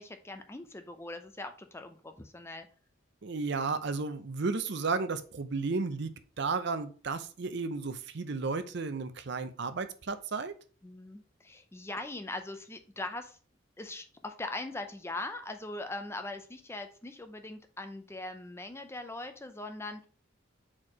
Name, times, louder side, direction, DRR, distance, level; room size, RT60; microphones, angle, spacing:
voice 1, 0.0-2.7 10.8-13.4 13.8-20.1, left 2 dB, 15° left, 8 dB, 0.5 m, -41 dB
voice 2, 3.2-6.1 6.4-10.5, right 4 dB, 60° right, 10 dB, 0.6 m, -33 dB
4.6 x 4.3 x 4.8 m, 0.39 s
head